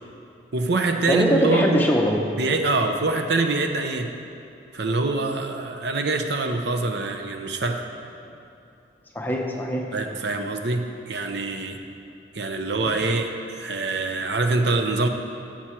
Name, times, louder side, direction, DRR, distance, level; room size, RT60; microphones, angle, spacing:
voice 1, 0.5-1.9 2.4-4.1 4.7-7.9 9.9-11.8 12.3-15.1, right 3 dB, 65° right, 5 dB, 0.7 m, -25 dB
voice 2, 1.1-2.3 9.1-9.9, equal, 10° left, 0 dB, 0.7 m, -22 dB
12.0 x 7.5 x 4.5 m, 2.7 s
head